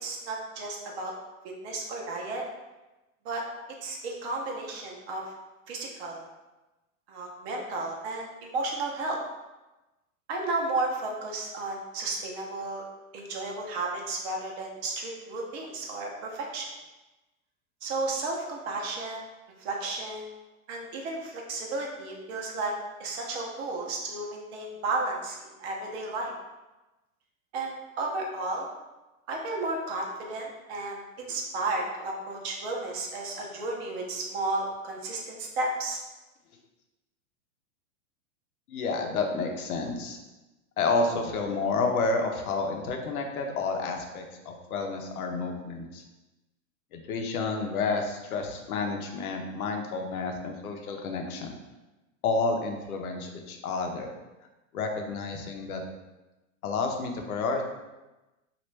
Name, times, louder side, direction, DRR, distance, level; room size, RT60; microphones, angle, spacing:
voice 1, 0.0-1.1 1.4-2.4 3.2-3.4 3.8-5.2 5.7-6.2 7.1-9.2 10.3-12.8 13.1-16.7 17.8-19.2 19.6-20.3 20.7-22.7 23.0-26.3 27.5-28.7 29.3-36.0, right 2 dB, 45° right, 0 dB, 0.8 m, -33 dB
voice 2, 38.7-40.2 40.8-46.0 46.9-51.5 52.2-54.1 54.7-55.8 56.6-57.6, left 3 dB, 85° left, 3 dB, 0.7 m, -30 dB
3.0 x 2.5 x 3.2 m, 1.1 s
hypercardioid pair, 135°, 42 cm